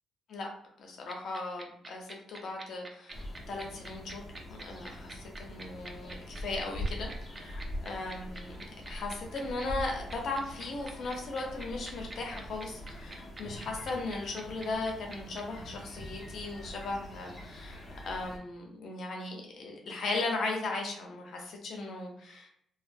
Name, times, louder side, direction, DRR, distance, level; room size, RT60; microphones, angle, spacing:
voice 1, 0.8-4.2 4.5-8.6 8.9-22.5, left 3 dB, 65° left, 1 dB, 0.7 m, -37 dB
sound 1, 1.1-15.4, right 2 dB, 30° right, 0.4 m, -45 dB
sound 2, 3.1-18.4, equal, 35° left, 0.8 m, -43 dB
2.4 x 2.3 x 2.5 m, 0.67 s
cardioid pair, 90°, 0 cm